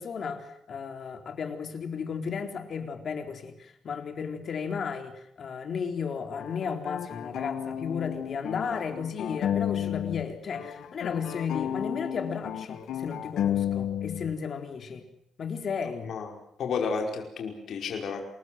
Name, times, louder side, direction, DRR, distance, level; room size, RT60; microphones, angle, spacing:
voice 1, 0.0-15.0 15.4-16.1, left 6 dB, 50° left, 5 dB, 4.0 m, -34 dB
sound 1, 6.4-10.3 10.5-14.3, left 10 dB, 90° left, 2.2 m, -32 dB
voice 2, 16.6-18.2, left 5 dB, 65° left, 2 dB, 5.2 m, -31 dB
28.5 x 20.5 x 7.9 m, 0.76 s
cardioid pair, 145°, 0 cm